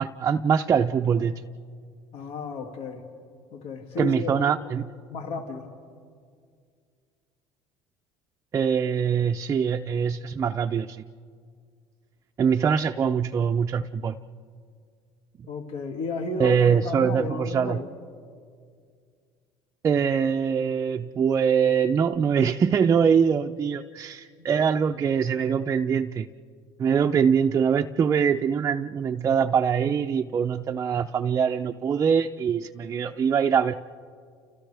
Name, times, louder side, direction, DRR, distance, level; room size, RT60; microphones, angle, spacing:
voice 1, 0.0-1.4 4.0-4.9 8.5-11.0 12.4-14.2 16.4-17.8 19.8-26.3 26.8-33.7, right 7 dB, 30° right, 6 dB, 0.5 m, -23 dB
voice 2, 2.1-3.0 3.5-4.5 5.1-5.7 15.5-17.9 24.4-24.5 26.9-27.1, left 3 dB, 70° left, 3 dB, 2.5 m, -33 dB
30.0 x 30.0 x 3.4 m, 2.1 s
cardioid pair, 125°, 10 cm